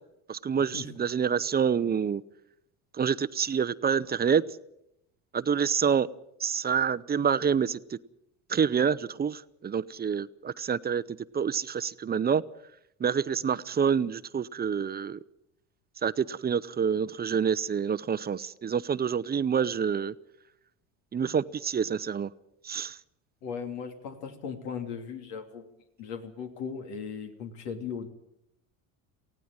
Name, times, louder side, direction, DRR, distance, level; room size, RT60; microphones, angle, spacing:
voice 1, 0.3-2.2 2.9-4.4 5.3-6.1 6.4-8.0 8.5-12.4 13.0-15.2 16.0-20.1 21.1-22.3 22.6-23.0, right 7 dB, 25° right, 16 dB, 0.7 m, -27 dB
voice 2, 23.4-25.6 26.0-28.1, left 6 dB, 75° left, 5 dB, 3.1 m, -37 dB
19.0 x 15.5 x 8.9 m, 0.80 s
supercardioid pair, 95°, 40 cm